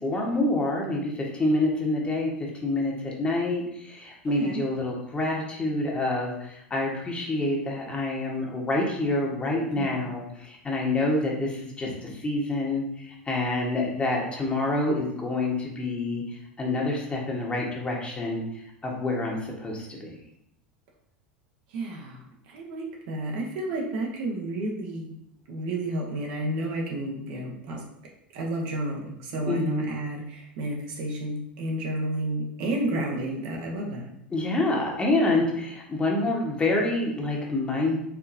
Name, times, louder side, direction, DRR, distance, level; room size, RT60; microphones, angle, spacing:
voice 1, 0.0-20.2 29.4-29.8 34.3-38.0, left 2 dB, 20° left, -2 dB, 1.2 m, -27 dB
voice 2, 21.7-25.2 25.5-27.8 28.3-34.1, right 1 dB, 60° right, 0 dB, 0.9 m, -31 dB
4.5 x 3.1 x 2.6 m, 0.75 s
figure-of-eight pair, 80°, 6 cm